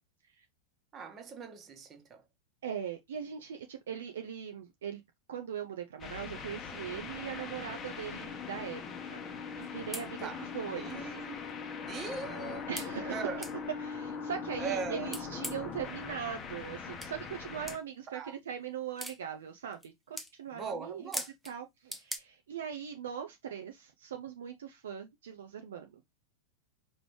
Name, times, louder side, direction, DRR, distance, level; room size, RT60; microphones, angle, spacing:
voice 1, 0.9-2.2 10.2-10.4 10.8-11.4 11.9-13.4 14.6-15.1 18.1-18.3 20.5-21.3, right 5 dB, 25° right, 1.1 m, -40 dB
voice 2, 2.6-5.0 5.3-9.2 9.6-10.3 10.5-11.1 12.7-13.3 13.8-21.1 21.4-26.0, right 8 dB, 60° right, 0.5 m, -40 dB
sound 1, 6.0-17.8, left 6 dB, 25° left, 0.9 m, -41 dB
sound 2, 9.6-9.7 9.9-10.1 10.9-11.0 11.5-11.6 12.8-12.9 13.4-13.6 15.1-15.7 17.0-17.1 17.7-17.8 19.0-19.2 19.7-19.9 20.2-20.3 21.1-21.5 21.9-22.2, equal, ahead, 0.6 m, -39 dB
5.0 x 3.1 x 3.1 m
figure-of-eight pair, 90°, 0 cm